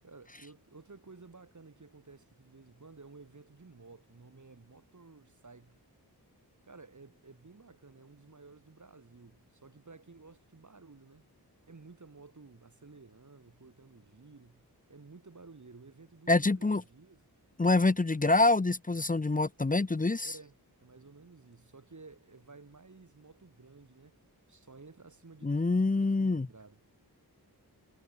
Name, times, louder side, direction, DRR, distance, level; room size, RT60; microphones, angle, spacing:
voice 1, 0.0-5.8 6.6-11.3 11.7-17.2 20.2-20.5 20.8-24.2 24.5-26.8, right 4 dB, 50° right, 3.2 m, -54 dB
voice 2, 16.3-16.8 17.6-20.3 25.4-26.5, left 3 dB, 20° left, 0.7 m, -26 dB
wide cardioid pair, 75°, 39 cm